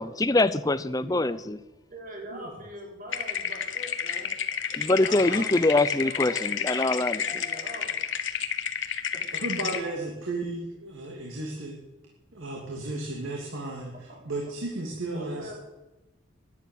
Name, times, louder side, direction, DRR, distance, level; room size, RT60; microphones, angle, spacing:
voice 1, 0.0-1.6 4.7-7.6, left 2 dB, 20° left, 14 dB, 0.6 m, -24 dB
voice 2, 1.9-4.3 4.7-8.0 14.1-14.2 15.1-15.5, right 1 dB, 45° right, 0 dB, 4.6 m, -42 dB
sound 1, 3.1-9.8, left 7 dB, 70° left, 1.3 m, -31 dB
voice 3, 9.4-11.8 12.3-15.5, right 2 dB, 85° right, -1 dB, 2.8 m, -34 dB
12.5 x 11.0 x 9.2 m, 1.1 s
head